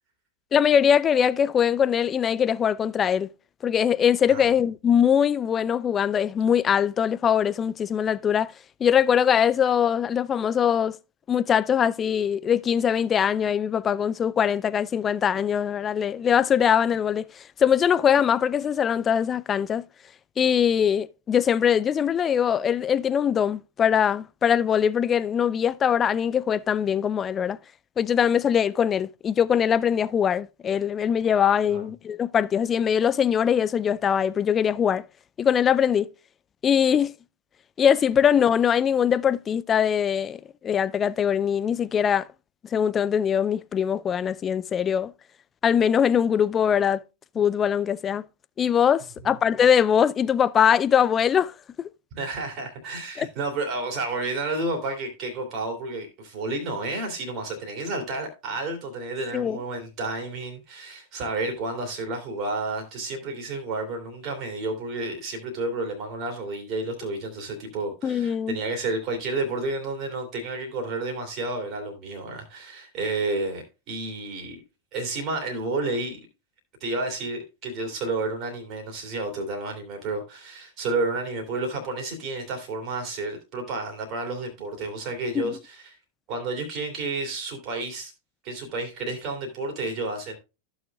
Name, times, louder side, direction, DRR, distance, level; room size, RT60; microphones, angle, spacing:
voice 1, 0.5-3.3 3.6-8.5 8.8-11.0 11.3-19.8 20.4-27.6 28.0-35.0 35.4-36.1 36.6-37.1 37.8-42.3 42.7-45.1 45.6-47.0 47.4-48.2 48.6-51.5 53.2-53.3 59.3-59.6 68.0-68.6 85.3-85.6, left 8 dB, 25° left, 0.4 m, -22 dB
voice 2, 52.1-74.6 74.9-76.2 76.8-86.0 86.3-88.1 88.4-90.4, right 2 dB, 40° right, 2.8 m, -31 dB
14.5 x 6.3 x 2.3 m
figure-of-eight pair, 90°, 0 cm